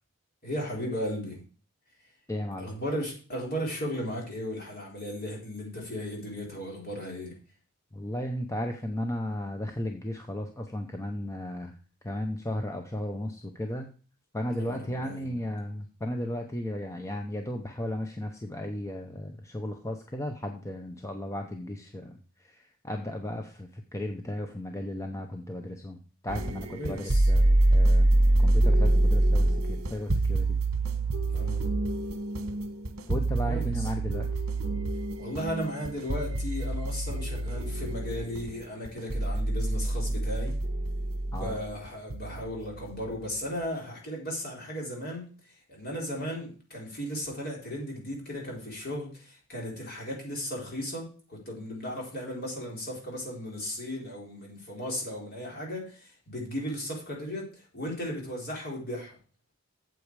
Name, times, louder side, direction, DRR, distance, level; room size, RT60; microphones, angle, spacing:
voice 1, 0.4-1.4 2.6-7.4 14.6-15.4 26.8-27.3 31.3-31.7 33.4-33.9 35.2-40.5 41.3-45.3 45.7-59.2, equal, 45° left, -2 dB, 4.0 m, -36 dB
voice 2, 2.3-2.7 7.9-11.7 12.0-13.9 14.3-30.6 33.1-34.3 41.3-41.6, left 1 dB, 15° left, 4 dB, 0.7 m, -35 dB
sound 1, 26.3-43.5, right 1 dB, 70° right, 1.3 m, -26 dB
8.5 x 7.8 x 4.7 m, 0.38 s
head